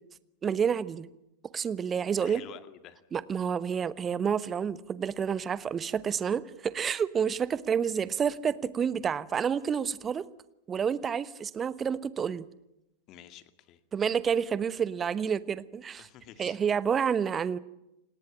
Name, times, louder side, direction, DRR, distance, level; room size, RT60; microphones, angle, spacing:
voice 1, 0.4-1.1 1.5-2.4 3.1-10.3 10.7-12.5 13.9-16.1 16.4-17.6, right 7 dB, 20° right, 18 dB, 1.1 m, -29 dB
voice 2, 2.2-3.0 13.1-13.8 16.0-16.6, left 11 dB, 35° left, 12 dB, 2.1 m, -49 dB
29.0 x 19.0 x 8.8 m, 0.89 s
figure-of-eight pair, 90°, 0 cm